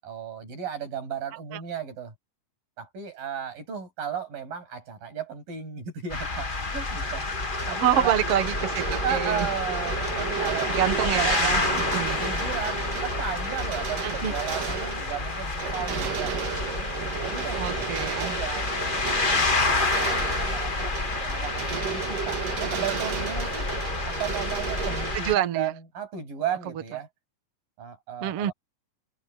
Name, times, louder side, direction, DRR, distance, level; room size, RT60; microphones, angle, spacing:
voice 1, 0.0-2.1 2.8-7.3 7.7-8.2 9.0-11.8 12.2-16.9 17.2-18.7 19.1-23.7 24.0-27.1 27.8-28.5, right 8 dB, 90° right, 9.6 m, -35 dB
sound 1, 6.1-25.3, left 3 dB, 85° left, 0.4 m, -29 dB
sound 2, 6.8-25.2, right 7 dB, 75° right, 3.7 m, -34 dB
voice 2, 7.8-9.5 10.7-11.6 11.9-12.2 14.0-14.3 17.5-18.4 25.1-25.7 28.2-28.5, right 11 dB, 55° right, 2.0 m, -26 dB
omnidirectional pair, 3.9 m